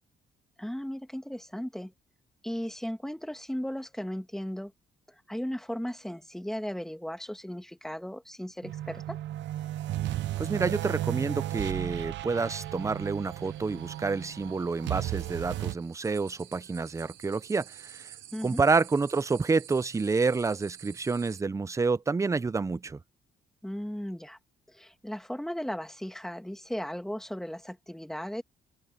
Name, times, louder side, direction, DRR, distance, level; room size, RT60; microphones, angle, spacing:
voice 1, 0.6-1.9 2.4-4.7 5.1-9.2 18.3-18.6 23.6-24.4 24.7-28.4, equal, ahead, 2.3 m, -36 dB
sound 1, 8.6-15.7, right 14 dB, 70° right, 0.5 m, -34 dB
voice 2, 10.4-18.1 18.4-23.0, right 4 dB, 15° right, 0.5 m, -28 dB
sound 2, 12.3-21.4, right 12 dB, 90° right, 2.6 m, -51 dB
open air
cardioid pair, 130°, 19 cm